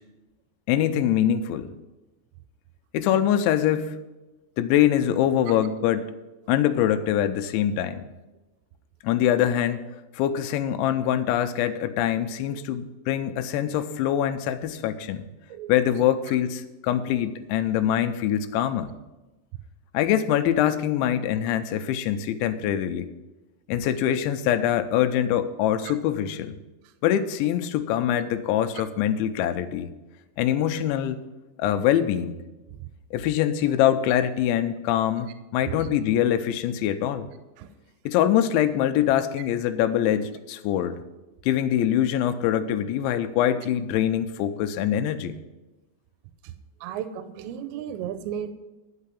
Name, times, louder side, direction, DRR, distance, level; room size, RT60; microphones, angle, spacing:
voice 1, 0.7-1.7 2.9-4.0 4.6-6.1 6.5-8.1 9.0-9.8 10.1-15.2 15.7-18.9 19.9-23.1 23.7-26.6 27.0-29.9 30.4-31.2 31.6-32.4 33.1-37.3 38.1-41.0 41.5-45.4, left 10 dB, 90° left, 10 dB, 3.0 m, -24 dB
voice 2, 46.8-48.5, right 9 dB, 85° right, 10 dB, 2.9 m, -34 dB
11.0 x 5.6 x 8.4 m, 1.1 s
omnidirectional pair, 5.2 m